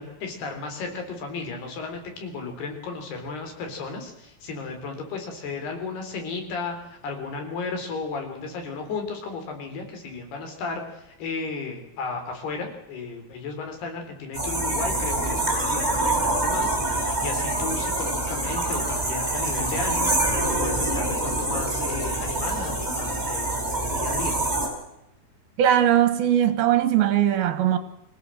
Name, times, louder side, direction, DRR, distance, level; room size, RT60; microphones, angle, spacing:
voice 1, 0.0-24.4, left 4 dB, 80° left, 5.8 m, -34 dB
sound 1, 14.3-24.7, right 2 dB, 10° right, 4.9 m, -25 dB
voice 2, 25.6-27.8, right 11 dB, 70° right, 3.3 m, -20 dB
25.0 x 16.5 x 7.8 m
omnidirectional pair, 4.5 m